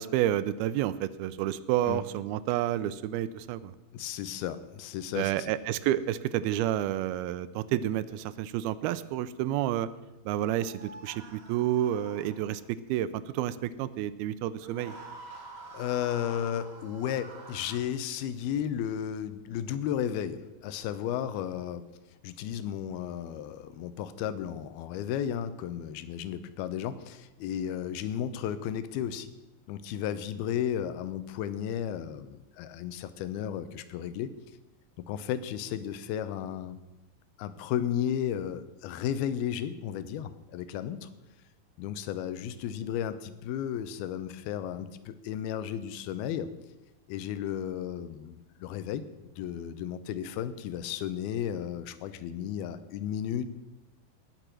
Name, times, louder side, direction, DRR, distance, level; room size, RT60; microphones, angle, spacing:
voice 1, 0.0-3.8 5.1-9.9 10.3-15.0, right 12 dB, 85° right, 15 dB, 2.5 m, -30 dB
voice 2, 3.9-5.5 15.7-21.8 22.2-29.3 29.7-34.3 35.1-36.8 37.4-41.1 41.8-46.5 47.1-49.0 49.4-53.5, left 9 dB, 85° left, 13 dB, 2.7 m, -34 dB
sound 1, 10.3-12.7 14.5-17.8, right 2 dB, 30° right, 1.1 m, -47 dB
19.0 x 6.8 x 6.1 m, 1.0 s
omnidirectional pair, 4.3 m